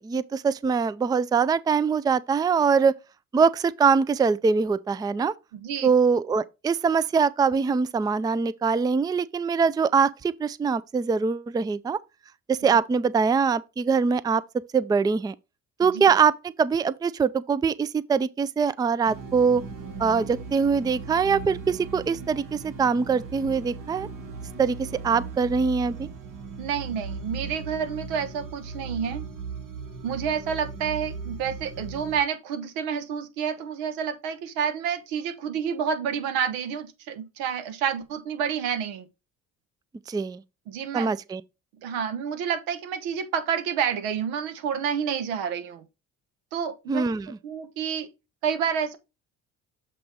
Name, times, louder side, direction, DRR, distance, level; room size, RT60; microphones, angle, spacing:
voice 1, 0.0-3.0 3.3-5.3 5.8-12.0 12.5-14.4 14.7-15.4 15.8-19.6 20.0-24.1 24.6-26.1 40.1-40.4 40.9-41.4 46.9-47.4, right 5 dB, 10° right, 0.4 m, -23 dB
voice 2, 5.5-5.9 15.8-15.9 26.6-29.2 30.0-39.1 40.7-41.1 41.8-45.8 46.5-47.0 47.4-48.1 48.4-49.0, right 7 dB, 85° right, 1.2 m, -29 dB
sound 1, 19.0-32.2, right 4 dB, 60° right, 2.0 m, -38 dB
7.8 x 3.0 x 5.1 m
supercardioid pair, 65°, 35 cm